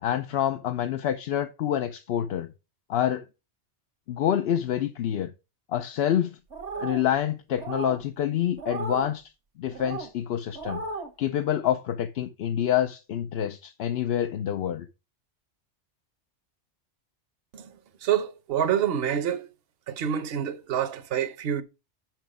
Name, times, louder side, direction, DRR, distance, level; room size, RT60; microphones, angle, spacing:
voice 1, 0.0-2.5 2.9-3.2 4.1-5.3 5.7-6.4 6.8-9.3 9.6-10.8 11.2-14.9, left 10 dB, 65° left, 0.8 m, -27 dB
sound 1, 6.5-7.1 7.6-8.0 8.6-9.1 9.7-10.1 10.5-11.1, right 4 dB, 80° right, 1.5 m, -34 dB
voice 2, 18.0-19.5 19.9-21.6, right 9 dB, 60° right, 1.0 m, -27 dB
6.2 x 5.9 x 4.8 m
omnidirectional pair, 1.2 m